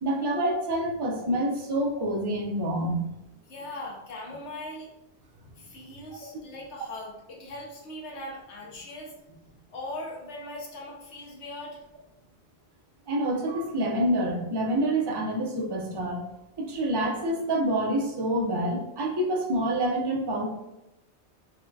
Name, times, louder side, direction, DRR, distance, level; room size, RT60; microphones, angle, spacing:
voice 1, 0.0-3.0 13.1-16.2 16.6-20.5, right 1 dB, 35° right, -1 dB, 0.4 m, -27 dB
voice 2, 3.5-4.9 5.6-11.8, left 1 dB, 80° left, -2 dB, 1.0 m, -40 dB
4.1 x 2.1 x 2.6 m, 0.92 s
omnidirectional pair, 1.2 m